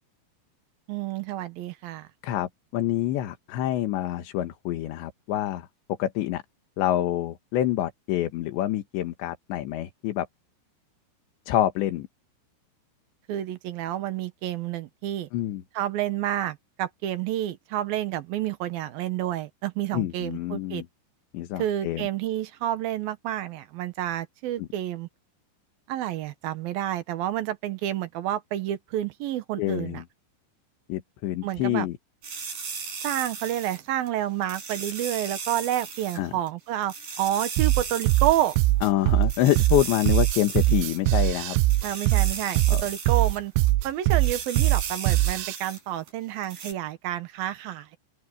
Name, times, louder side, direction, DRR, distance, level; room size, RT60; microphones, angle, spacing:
voice 1, 0.9-2.1 13.3-15.3 15.7-20.8 21.6-25.1 25.9-30.0 31.4-31.9 33.0-38.6 41.8-43.5 43.8-48.0, right 12 dB, 70° right, 2.5 m, -29 dB
voice 2, 2.2-5.7 6.0-6.4 6.8-10.3 11.5-12.1 15.3-15.6 19.9-20.9 21.3-22.1 24.6-24.7 29.6-30.0 30.9-32.0 36.2-36.3 38.8-41.6 42.7-42.8, left 13 dB, 75° left, 3.7 m, -27 dB
sound 1, 32.2-34.1 34.4-36.2 36.5-36.6 36.8-38.6 38.9-39.0 39.2-41.3 41.6-43.4 43.7-43.8 44.0-45.8 46.1-46.2 46.4-46.7, right 5 dB, 45° right, 7.2 m, -36 dB
sound 2, 37.6-45.6, right 18 dB, 85° right, 2.9 m, -22 dB
open air
omnidirectional pair, 5.2 m